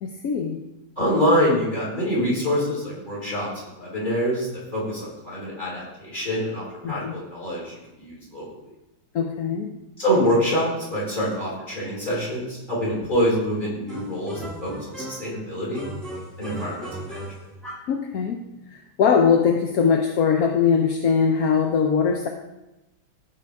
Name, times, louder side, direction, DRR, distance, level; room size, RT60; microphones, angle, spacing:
voice 1, 0.0-0.6 6.8-7.1 9.1-9.7 17.9-18.4 18.7-22.3, left 6 dB, 60° left, 3 dB, 1.0 m, -21 dB
voice 2, 1.0-8.4 10.0-15.9 16.4-17.2, equal, 25° left, -6 dB, 4.1 m, -25 dB
sound 1, 13.9-15.4 15.7-18.0, right 1 dB, ahead, 2.1 m, -37 dB
15.0 x 6.0 x 3.6 m, 0.96 s
omnidirectional pair, 2.1 m